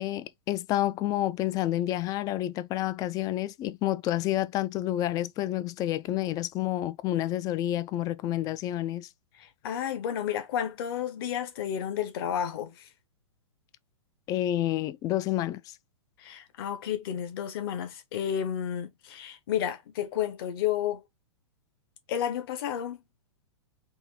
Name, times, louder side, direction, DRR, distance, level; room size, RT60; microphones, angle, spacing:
voice 1, 0.0-9.1 14.3-15.8, left 14 dB, 25° left, 0.4 m, -29 dB
voice 2, 9.4-12.8 16.2-21.0 22.1-23.0, left 9 dB, 50° left, 1.1 m, -31 dB
4.4 x 2.7 x 3.9 m
figure-of-eight pair, 110°, 16 cm